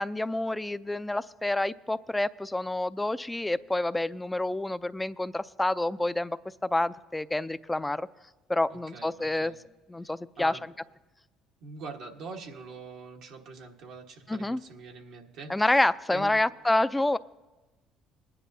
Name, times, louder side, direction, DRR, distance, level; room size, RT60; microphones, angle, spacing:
voice 1, 0.0-6.4 6.6-8.1 8.5-9.5 9.9-10.7 14.3-14.6 15.5-17.2, left 1 dB, 10° left, 14 dB, 0.4 m, -28 dB
voice 2, 8.7-9.6 10.4-10.6 11.6-15.7 16.1-16.4, right 4 dB, 70° right, 1 dB, 1.3 m, -44 dB
21.0 x 10.0 x 2.7 m, 1.1 s
hypercardioid pair, 65°, 0 cm